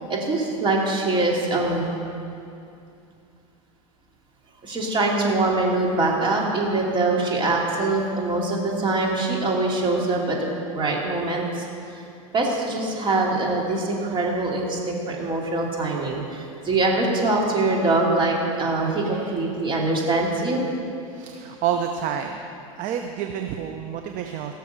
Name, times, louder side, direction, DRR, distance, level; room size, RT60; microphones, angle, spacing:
voice 1, 0.1-1.9 4.6-11.6 11.9-12.0 12.3-20.6, right 2 dB, 25° right, -2 dB, 2.8 m, -23 dB
voice 2, 21.1-22.4 22.8-24.5, right 8 dB, 45° right, 5 dB, 0.8 m, -29 dB
16.5 x 6.8 x 6.7 m, 2.6 s
hypercardioid pair, 105°, 18 cm